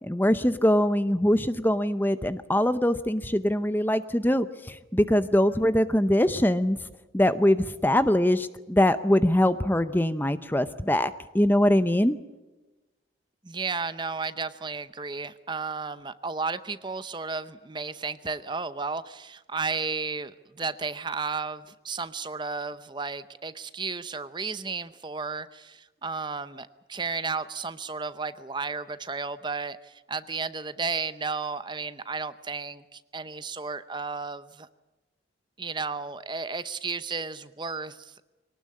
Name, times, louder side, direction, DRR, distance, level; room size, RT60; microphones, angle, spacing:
voice 1, 0.0-6.9 7.1-12.2, left 1 dB, 10° left, 12 dB, 0.7 m, -23 dB
voice 2, 13.4-34.7 35.6-38.1, right 4 dB, 25° right, 13 dB, 0.7 m, -33 dB
23.5 x 18.5 x 8.5 m, 1.1 s
head